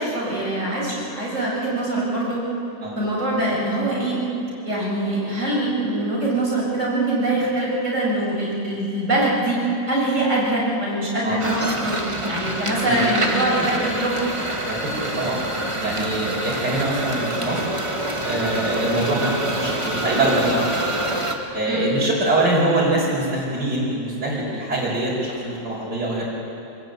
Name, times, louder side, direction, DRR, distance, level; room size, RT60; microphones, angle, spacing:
voice 1, 0.0-2.4 3.0-4.2 4.6-9.6 9.9-12.0 12.3-14.1 21.7-21.9, right 1 dB, 40° right, -5 dB, 7.6 m, -23 dB
sound 1, 11.4-21.4, right 1 dB, 15° right, 1.8 m, -26 dB
voice 2, 14.7-15.4 15.8-17.6 18.2-21.0 21.5-26.3, right 2 dB, 65° right, -6 dB, 5.8 m, -24 dB
26.5 x 21.0 x 9.2 m, 2.8 s
omnidirectional pair, 2.0 m